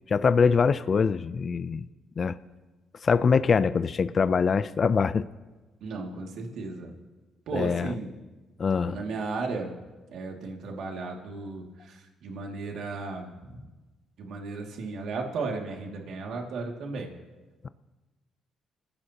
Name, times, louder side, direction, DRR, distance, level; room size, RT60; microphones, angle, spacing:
voice 1, 0.1-1.9 2.2-2.4 3.0-5.3 7.5-7.9 8.6-9.0, left 5 dB, 45° left, 13 dB, 0.5 m, -23 dB
voice 2, 5.8-6.9 7.5-8.1 8.8-9.7 10.1-13.7 14.2-17.1, right 3 dB, 75° right, 1 dB, 2.4 m, -35 dB
28.0 x 15.5 x 3.0 m, 1.2 s
cardioid pair, 90°, 0 cm